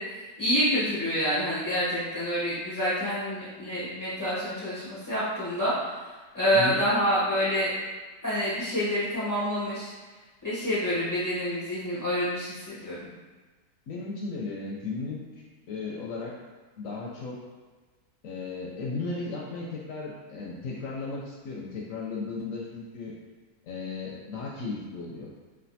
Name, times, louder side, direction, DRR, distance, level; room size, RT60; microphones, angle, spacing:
voice 1, 0.0-6.0 6.3-7.7 8.2-9.9 10.4-13.1, equal, 30° left, -11 dB, 0.4 m, -27 dB
voice 2, 13.9-15.2 15.7-16.4 16.8-17.4 18.2-23.1 23.7-25.3, left 3 dB, 70° left, -3 dB, 0.8 m, -35 dB
3.2 x 2.4 x 2.6 m, 1.3 s
omnidirectional pair, 1.6 m